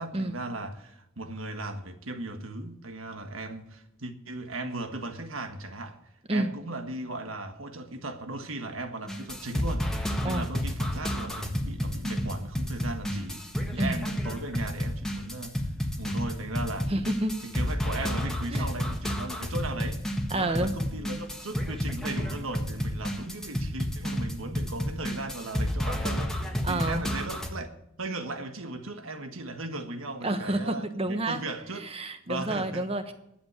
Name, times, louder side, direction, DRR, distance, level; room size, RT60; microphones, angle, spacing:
voice 1, 0.0-6.0 6.3-13.4 13.7-15.6 16.0-16.9 17.5-27.7 28.0-31.9 32.2-32.9, right 2 dB, 85° right, 1.5 m, -37 dB
sound 1, 9.1-27.5, equal, 5° left, 1.5 m, -31 dB
voice 2, 13.8-14.1 16.9-17.4 18.5-18.7 20.3-20.7 26.6-27.1 30.2-31.4 31.7-33.1, right 1 dB, 30° right, 1.2 m, -29 dB
11.5 x 8.7 x 8.1 m
head